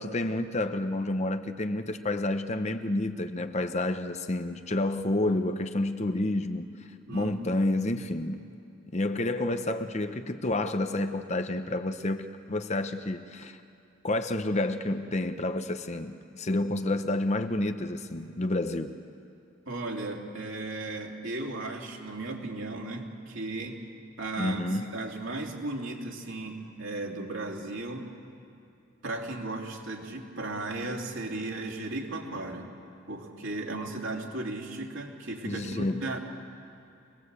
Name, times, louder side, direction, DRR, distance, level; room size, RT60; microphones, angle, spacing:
voice 1, 0.0-6.7 7.1-8.5 8.9-13.6 14.0-18.9 24.4-25.0 35.5-36.1, left 2 dB, 35° left, 8 dB, 0.8 m, -29 dB
voice 2, 7.1-7.7 19.7-23.8 24.2-28.1 29.0-32.7 33.1-36.2, right 2 dB, 65° right, 0 dB, 3.0 m, -36 dB
25.0 x 19.0 x 8.2 m, 2.6 s
head